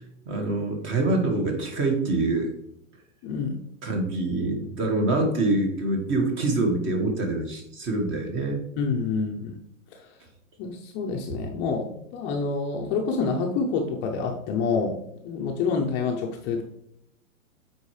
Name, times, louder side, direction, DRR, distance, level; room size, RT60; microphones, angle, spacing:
voice 1, 0.3-2.5 3.8-8.6, right 2 dB, 30° right, 3 dB, 1.6 m, -25 dB
voice 2, 3.2-3.6 8.8-9.6 9.9-10.1 10.6-15.0 15.2-16.6, left 4 dB, 25° left, 2 dB, 0.7 m, -27 dB
8.4 x 4.4 x 3.2 m, 0.77 s
hypercardioid pair, 135°, 41 cm